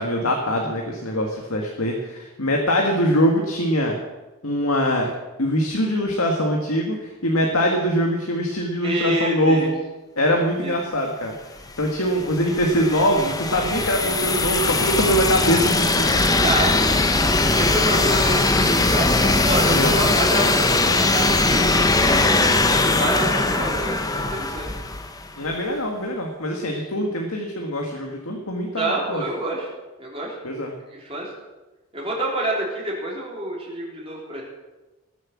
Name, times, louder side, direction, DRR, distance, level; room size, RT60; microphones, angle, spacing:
voice 1, 0.0-4.0 4.4-5.1 5.4-9.7 10.2-11.4 11.8-16.4 17.6-17.7 19.7-20.2 25.4-29.2 30.4-30.7, equal, 75° left, 1 dB, 1.9 m, -23 dB
voice 2, 8.8-9.7 10.6-10.8 16.4-16.9 17.2-19.1 19.4-22.6 23.0-24.7 28.7-29.7 30.0-30.3 30.9-31.3 31.9-34.4, right 1 dB, 25° right, -4 dB, 3.6 m, -27 dB
sound 1, 11.7-25.4, left 2 dB, 15° left, 0.8 m, -20 dB
19.0 x 7.8 x 7.4 m, 1.1 s
head